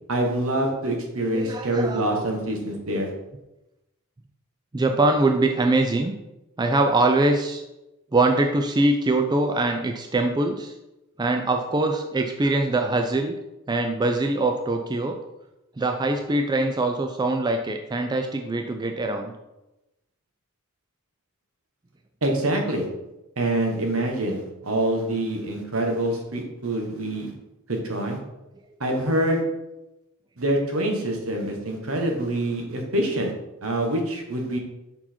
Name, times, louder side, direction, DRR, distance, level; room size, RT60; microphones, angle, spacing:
voice 1, 0.1-3.1 22.2-22.9 23.4-27.3 27.7-28.2 28.8-29.4 30.4-33.3 33.6-34.6, right 1 dB, 75° right, 2 dB, 1.3 m, -25 dB
voice 2, 1.3-2.3 4.7-6.1 6.6-7.6 8.1-10.7 11.2-13.3 13.7-15.2 15.8-19.3, right 2 dB, 20° right, 4 dB, 0.4 m, -23 dB
5.6 x 4.5 x 4.4 m, 0.95 s
head